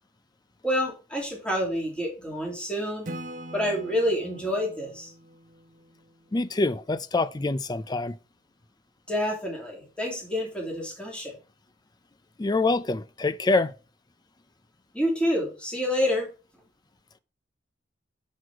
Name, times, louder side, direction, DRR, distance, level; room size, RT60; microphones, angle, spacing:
voice 1, 0.6-3.0 3.5-5.1 9.1-11.4 14.9-16.3, equal, 5° left, 2.6 m, -28 dB
Acoustic guitar / Strum, 3.0-6.6, right 1 dB, 45° right, 1.1 m, -42 dB
voice 2, 6.3-8.2 12.4-13.7, left 3 dB, 20° left, 0.4 m, -25 dB
6.5 x 6.3 x 4.7 m
head